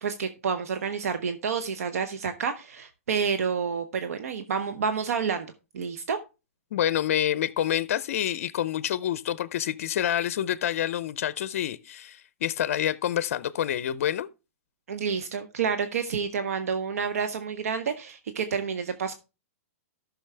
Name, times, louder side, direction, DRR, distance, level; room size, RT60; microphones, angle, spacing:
voice 1, 0.0-6.2 14.9-19.1, right 6 dB, 75° right, 0.9 m, -29 dB
voice 2, 6.7-14.3, left 11 dB, 65° left, 0.5 m, -27 dB
13.0 x 6.1 x 3.3 m
hypercardioid pair, 140°, 8 cm